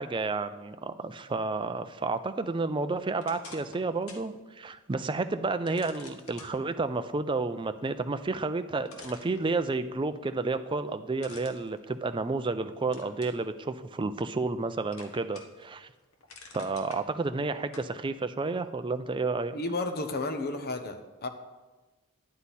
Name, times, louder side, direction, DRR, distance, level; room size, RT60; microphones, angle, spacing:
voice 1, 0.0-15.9 16.5-19.6, right 3 dB, 20° right, 10 dB, 0.4 m, -31 dB
sound 1, 3.2-4.3 4.7-4.8 5.7-6.5 8.3-8.4 8.9-9.9 11.2-12.5 12.9-13.4 13.9-14.6 14.9-15.6 16.0-17.0 17.7-17.9, left 3 dB, 65° left, 1.1 m, -49 dB
voice 2, 19.5-21.3, left 2 dB, 45° left, 7 dB, 0.9 m, -32 dB
9.9 x 9.6 x 4.2 m, 1.2 s
head